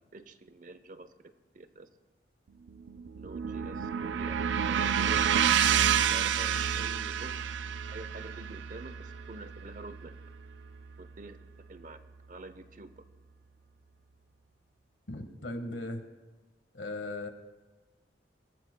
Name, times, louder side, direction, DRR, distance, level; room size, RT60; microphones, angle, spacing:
voice 1, 0.1-1.9 3.2-5.3 6.1-7.5 7.9-10.1 11.0-11.4 11.7-12.0 12.3-13.0, right 2 dB, 45° right, 12 dB, 0.7 m, -47 dB
sound 1, 2.7-11.0, right 8 dB, 80° right, 0.4 m, -29 dB
voice 2, 15.1-16.0 16.7-17.3, left 2 dB, 85° left, 7 dB, 1.5 m, -37 dB
22.5 x 18.5 x 2.2 m, 1.2 s
head